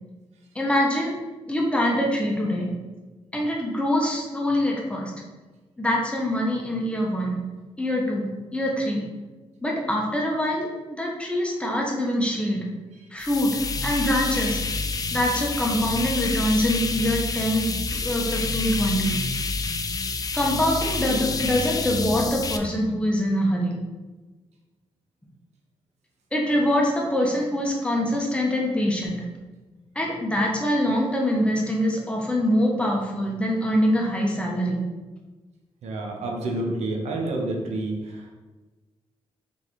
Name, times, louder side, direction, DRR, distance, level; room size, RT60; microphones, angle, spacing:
voice 1, 0.5-1.1 1.5-2.7 3.3-5.1 5.8-7.4 7.8-8.3 8.5-9.0 9.6-12.6 13.1-14.6 15.1-17.6 17.9-19.2 20.3-23.8 26.3-29.2 30.0-34.8, equal, 10° left, -2 dB, 0.9 m, -24 dB
sound 1, 13.2-22.6, left 3 dB, 35° left, 0.4 m, -28 dB
voice 2, 35.8-38.3, right 2 dB, 80° right, 1 dB, 0.7 m, -29 dB
3.8 x 3.5 x 3.1 m, 1.2 s
cardioid pair, 80°, 11 cm